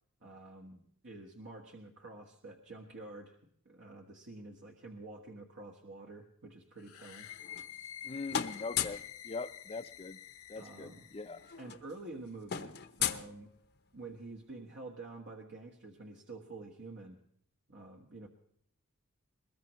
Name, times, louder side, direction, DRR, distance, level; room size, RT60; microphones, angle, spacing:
voice 1, 0.2-3.4 3.6-7.3 10.5-11.1 11.6-13.5 13.9-17.2 17.7-18.3, right 2 dB, 55° right, 1.5 m, -48 dB
sound 1, 6.8-11.6, left 11 dB, 75° left, 1.2 m, -49 dB
sound 2, 7.3-8.0 8.3-9.1 10.5-10.6 10.8-11.0 11.3-14.0, left 9 dB, 50° left, 0.9 m, -37 dB
voice 2, 8.0-10.2 10.5-11.4, left 3 dB, 25° left, 0.6 m, -42 dB
22.0 x 20.5 x 3.1 m
head